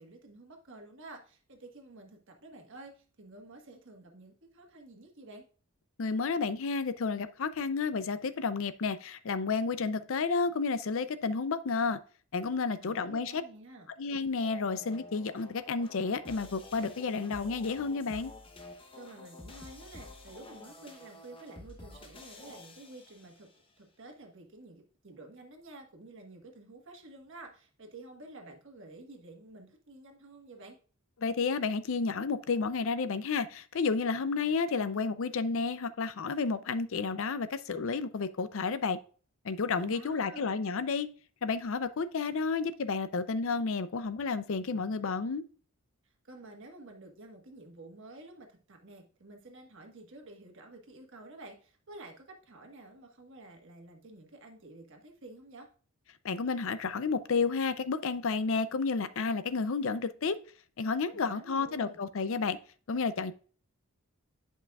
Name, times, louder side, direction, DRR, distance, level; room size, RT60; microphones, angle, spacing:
voice 1, 0.0-5.4 12.8-13.9 18.9-23.5 23.8-30.8 39.7-40.5 46.0-55.7 61.1-62.0, right 2 dB, 55° right, 1.4 m, -50 dB
voice 2, 6.0-12.0 12.3-13.4 14.0-18.3 31.2-39.0 39.4-41.1 41.4-45.4 56.2-60.4 60.8-62.6 62.9-63.3, left 4 dB, 60° left, 0.5 m, -31 dB
sound 1, 14.4-23.6, left 2 dB, 25° left, 0.8 m, -50 dB
10.0 x 5.5 x 2.3 m
head